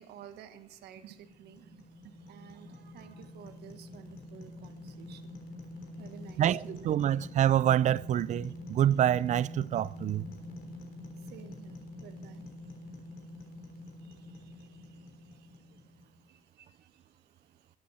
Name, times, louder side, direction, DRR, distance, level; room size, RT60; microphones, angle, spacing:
voice 1, 0.0-5.5 5.9-6.7 10.4-17.8, right 9 dB, 75° right, 1.4 m, -54 dB
sound 1, 1.1-16.3, left 1 dB, 65° left, 3.5 m, -46 dB
voice 2, 6.4-10.3, right 11 dB, 45° right, 0.4 m, -26 dB
16.5 x 11.5 x 4.2 m
cardioid pair, 110°, 17 cm